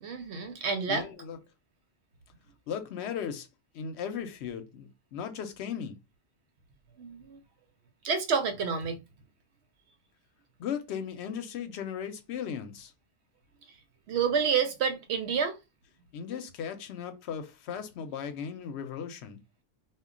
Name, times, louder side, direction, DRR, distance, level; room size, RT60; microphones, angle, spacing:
voice 1, 0.0-1.1 7.0-7.4 8.0-9.0 14.1-15.6, right 6 dB, 85° right, 0.9 m, -29 dB
voice 2, 0.9-1.4 2.7-3.5 3.7-6.0 10.6-12.9 16.1-19.4, left 7 dB, 90° left, 0.9 m, -37 dB
2.2 x 2.2 x 3.6 m
omnidirectional pair, 1.1 m